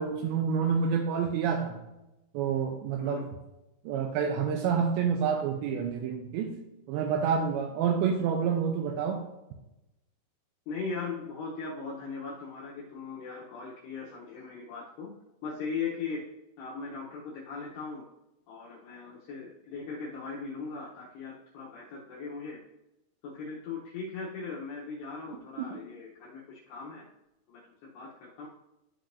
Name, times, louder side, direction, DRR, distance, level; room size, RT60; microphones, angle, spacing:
voice 1, 0.0-1.8 2.3-3.3 3.9-6.5 6.9-9.2 25.6-25.7, right 6 dB, 85° right, 3 dB, 2.6 m, -28 dB
voice 2, 10.7-15.1 15.4-16.2 16.6-18.1 18.5-22.6 23.2-27.0 27.5-28.5, left 4 dB, 75° left, -4 dB, 2.6 m, -39 dB
13.5 x 5.0 x 2.6 m, 0.94 s
omnidirectional pair, 5.7 m